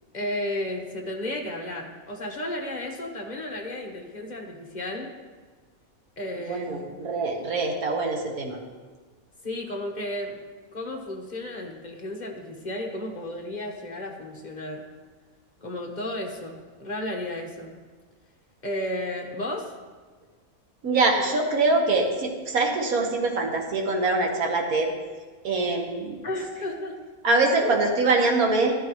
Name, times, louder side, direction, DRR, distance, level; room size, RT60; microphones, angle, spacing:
voice 1, 0.1-5.1 6.2-6.9 9.4-10.3 10.7-14.9 15.6-17.8 18.6-19.7 26.2-27.0 27.6-27.8, left 1 dB, 35° left, 1 dB, 1.3 m, -33 dB
voice 2, 6.5-8.6 20.8-24.9 25.4-26.2 27.2-28.7, right 3 dB, 85° right, 1 dB, 1.9 m, -24 dB
13.0 x 12.0 x 3.2 m, 1.4 s
omnidirectional pair, 1.5 m